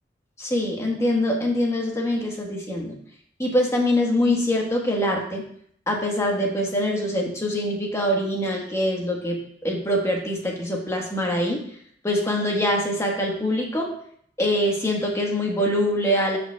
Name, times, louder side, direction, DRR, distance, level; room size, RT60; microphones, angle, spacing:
voice 1, 0.4-3.0 3.4-5.4 5.9-11.6 12.0-13.9 14.4-16.4, left 1 dB, 15° left, 0 dB, 1.3 m, -24 dB
12.5 x 5.2 x 2.3 m, 0.64 s
head